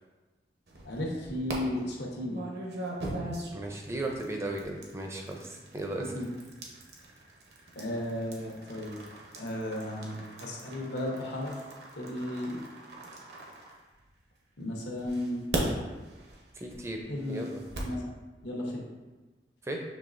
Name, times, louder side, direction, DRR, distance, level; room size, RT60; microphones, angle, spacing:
sound 1, 0.7-1.6 2.3-14.3 15.0-18.0, right 2 dB, 70° right, 0.8 m, -40 dB
voice 1, 0.8-2.4 6.0-6.3 7.7-9.0 9.4-11.5 12.0-12.6 14.6-15.4 17.1-17.5 17.8-18.1 18.4-18.8, left 1 dB, 80° left, -1 dB, 1.0 m, -34 dB
voice 2, 3.5-6.1 16.6-17.0 17.3-17.6 19.6-19.8, right 2 dB, 15° right, 1 dB, 0.4 m, -36 dB
6.6 x 3.1 x 2.5 m, 1.2 s
head